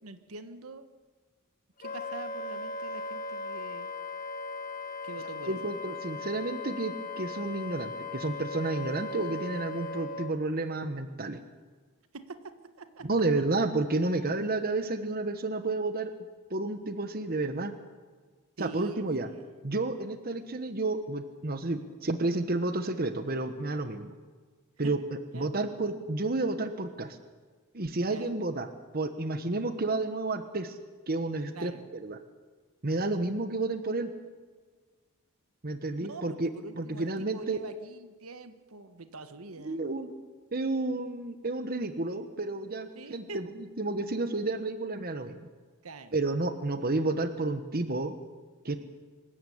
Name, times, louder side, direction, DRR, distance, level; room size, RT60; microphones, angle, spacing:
voice 1, 0.0-0.8 1.8-3.9 5.0-5.6 12.1-13.1 18.6-19.4 24.8-24.9 25.3-25.5 28.0-28.4 31.5-31.9 32.9-33.1 36.0-39.8 42.9-43.4 45.8-46.1, right 3 dB, 80° right, 9 dB, 1.5 m, -44 dB
Wind instrument woodwind instrument, 1.8-10.3, left 3 dB, 40° left, 1.4 m, -38 dB
voice 2, 5.5-11.4 13.0-16.1 16.5-17.7 18.6-19.3 19.6-24.1 24.8-25.0 25.3-27.2 27.7-28.7 28.9-30.8 31.1-32.2 32.8-34.1 35.6-36.5 36.8-37.6 39.6-40.1 40.5-45.5 46.1-48.1 48.6-48.8, right 2 dB, 45° right, 9 dB, 1.2 m, -31 dB
25.0 x 14.0 x 8.6 m, 1.4 s
head